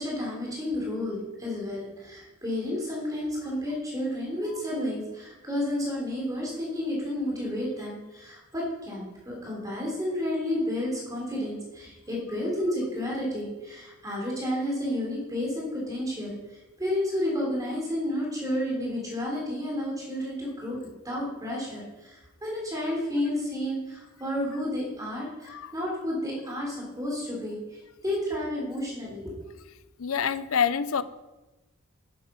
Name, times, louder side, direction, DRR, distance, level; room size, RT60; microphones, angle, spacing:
voice 1, 0.0-16.3 16.8-20.8 21.0-29.3, left 1 dB, 15° right, -3 dB, 3.4 m, -31 dB
voice 2, 30.0-31.0, left 7 dB, 80° left, 14 dB, 0.6 m, -26 dB
9.4 x 9.3 x 5.8 m, 1.1 s
head